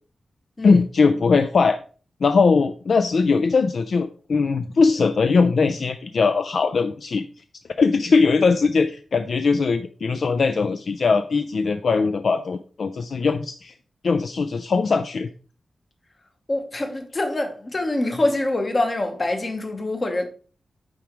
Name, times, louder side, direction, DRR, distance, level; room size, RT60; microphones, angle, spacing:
voice 1, 0.6-1.8 2.2-7.2 7.8-13.7 14.0-15.3, left 4 dB, 55° left, 0.3 m, -20 dB
voice 2, 16.5-20.3, left 2 dB, 30° left, 1.0 m, -25 dB
6.9 x 4.9 x 3.0 m
wide cardioid pair, 145°, 0 cm